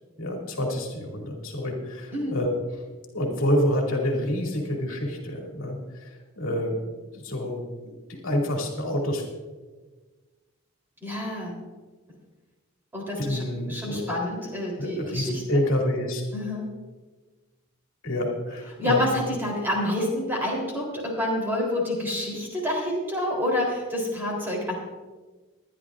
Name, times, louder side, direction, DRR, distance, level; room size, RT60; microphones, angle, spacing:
voice 1, 0.2-2.8 3.1-9.2 13.2-14.2 14.8-16.2 18.0-19.0, left 1 dB, 65° left, 0 dB, 2.4 m, -28 dB
voice 2, 11.0-11.6 12.9-13.4 13.7-15.4 16.3-16.7 18.8-24.7, left 1 dB, 10° right, -2 dB, 3.4 m, -28 dB
22.0 x 10.5 x 2.5 m, 1.3 s
head